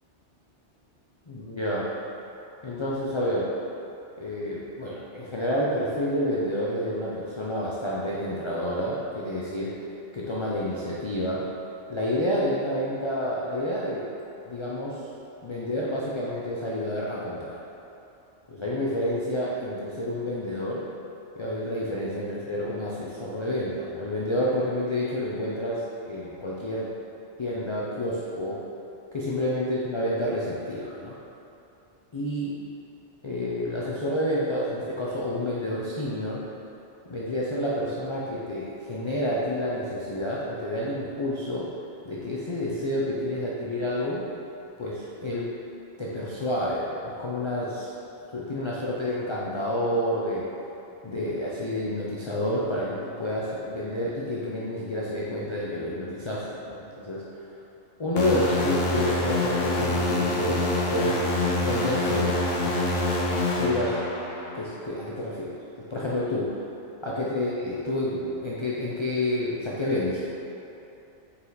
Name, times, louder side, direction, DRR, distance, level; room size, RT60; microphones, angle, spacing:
voice 1, 1.3-1.9 2.6-3.5 4.2-9.7 10.1-11.4 11.9-14.0 14.5-15.0 15.4-17.6 18.5-20.9 21.4-26.9 27.4-28.6 29.1-31.1 32.1-32.5 33.2-36.4 37.1-41.7 42.0-44.2 44.8-45.5 46.0-47.9 48.3-50.5 51.0-57.2 58.0-61.2 61.6-62.8 63.6-64.0 64.5-65.6 65.9-66.6 67.0-70.4, left 1 dB, 35° left, -6 dB, 0.5 m, -29 dB
sound 1, 58.2-64.6, left 2 dB, 60° left, 0.9 m, -26 dB
5.6 x 4.9 x 4.0 m, 2.8 s
omnidirectional pair, 1.2 m